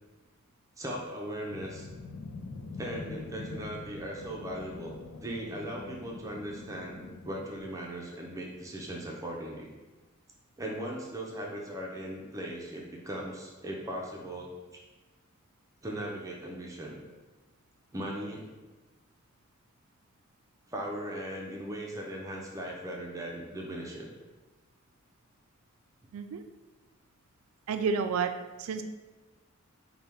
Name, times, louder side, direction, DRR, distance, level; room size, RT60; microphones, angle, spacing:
voice 1, 0.8-1.9 2.8-4.9 5.2-9.7 10.6-14.5 14.7-14.8 15.8-17.0 17.9-18.4 20.7-24.1, right 1 dB, 15° right, -2 dB, 0.5 m, -38 dB
sound 1, 1.5-7.6, left 3 dB, 75° left, 0.4 m, -44 dB
voice 2, 26.1-26.4 27.7-28.3 28.6-28.8, right 5 dB, 90° right, 8 dB, 0.3 m, -30 dB
4.3 x 2.2 x 3.4 m, 1.2 s
head